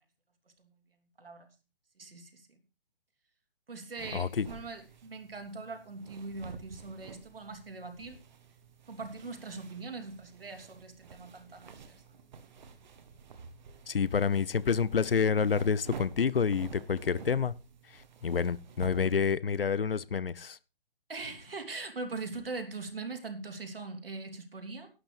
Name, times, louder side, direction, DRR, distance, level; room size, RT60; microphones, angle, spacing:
voice 1, 1.2-1.5 2.0-2.6 3.7-8.2 8.9-12.0 21.1-24.9, right 3 dB, 75° right, 6 dB, 3.1 m, -41 dB
sound 1, 4.0-19.4, right 5 dB, 50° right, 1.7 m, -50 dB
voice 2, 4.1-4.5 13.9-17.5 18.2-20.6, left 6 dB, 70° left, 20 dB, 0.8 m, -28 dB
11.5 x 9.2 x 5.0 m, 0.31 s
figure-of-eight pair, 135°, 29 cm